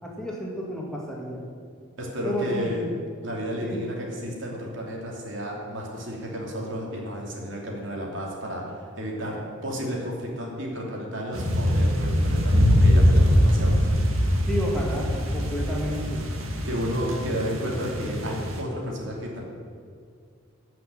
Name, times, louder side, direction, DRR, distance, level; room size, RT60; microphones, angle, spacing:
voice 1, 0.0-1.4 2.2-2.9 3.6-3.9 14.4-16.3, equal, 5° left, -3 dB, 2.0 m, -31 dB
voice 2, 2.0-2.9 3.2-13.8 16.6-19.4, equal, 60° right, -2 dB, 2.8 m, -32 dB
sound 1, 11.3-18.6, equal, 90° right, 1.9 m, -22 dB
15.0 x 6.1 x 8.9 m, 2.2 s
head